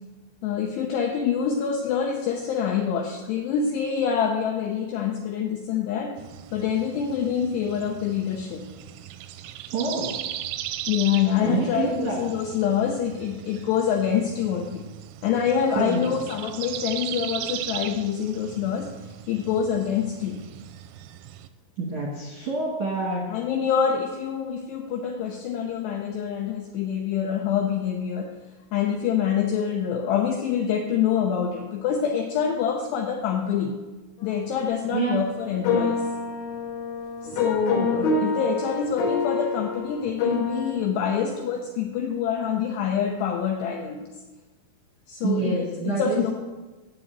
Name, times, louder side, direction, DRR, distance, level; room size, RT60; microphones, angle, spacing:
voice 1, 0.4-6.2 6.5-8.6 10.9-14.9 15.2-18.9 19.3-20.4 23.3-28.3 28.7-33.7 34.2-36.1 37.2-44.0 45.1-46.3, left 7 dB, 80° left, 2 dB, 2.4 m, -26 dB
sound 1, 6.2-21.5, right 12 dB, 90° right, 3.2 m, -38 dB
voice 2, 9.7-10.1 11.4-12.2 15.8-16.3 21.8-23.4 34.9-35.2 45.2-46.3, right 3 dB, 70° right, -3 dB, 1.8 m, -27 dB
sound 2, 35.5-40.7, left 4 dB, 60° left, 2.0 m, -27 dB
7.8 x 7.6 x 8.7 m, 1.2 s
omnidirectional pair, 5.8 m